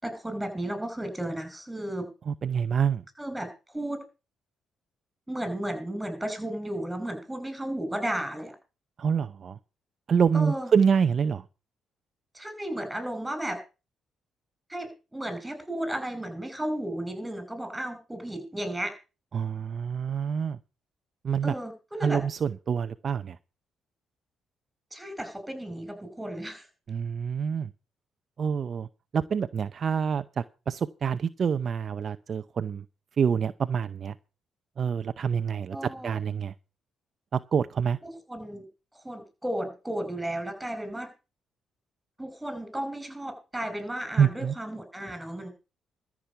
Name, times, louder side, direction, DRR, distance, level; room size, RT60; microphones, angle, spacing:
voice 1, 0.0-2.1 3.2-4.0 5.3-8.6 10.3-10.7 12.3-13.6 14.7-18.9 21.4-22.2 24.9-26.7 35.7-36.2 38.0-38.6 38.9-41.1 42.2-45.5, right 1 dB, 10° right, 5.7 m, -34 dB
voice 2, 2.3-3.0 9.0-9.6 10.1-11.4 19.3-20.6 21.2-21.5 22.0-23.4 26.9-27.7 28.4-28.9 29.1-32.8 33.2-34.1 34.8-36.5 37.3-38.0 44.2-44.5, right 7 dB, 50° right, 0.7 m, -26 dB
13.5 x 6.2 x 8.2 m
cardioid pair, 90°, 0 cm